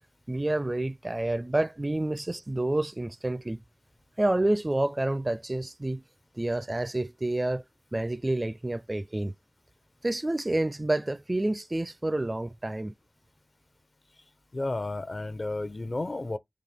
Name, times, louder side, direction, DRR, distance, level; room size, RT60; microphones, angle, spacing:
voice 1, 0.3-3.6 4.2-6.0 6.4-7.6 7.9-9.3 10.0-12.9, right 1 dB, 30° right, 0.4 m, -28 dB
voice 2, 14.5-16.4, left 2 dB, 45° left, 0.7 m, -32 dB
4.1 x 2.8 x 3.4 m
cardioid pair, 40°, 0 cm